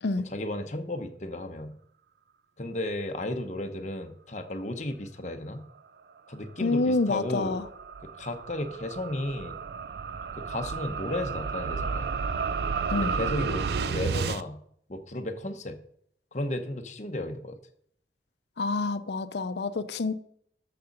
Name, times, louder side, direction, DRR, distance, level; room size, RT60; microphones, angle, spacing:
voice 1, 0.3-1.8 2.6-5.6 6.3-7.6 8.2-9.6 10.4-12.2 13.0-14.6 14.9-15.8 16.3-17.6, left 1 dB, 40° left, 0.9 m, -34 dB
voice 2, 6.6-7.7 12.9-13.1 18.6-20.1, left 3 dB, 75° left, 0.6 m, -27 dB
sound 1, 6.6-14.4, right 5 dB, 65° right, 0.4 m, -32 dB
6.9 x 6.7 x 5.4 m
head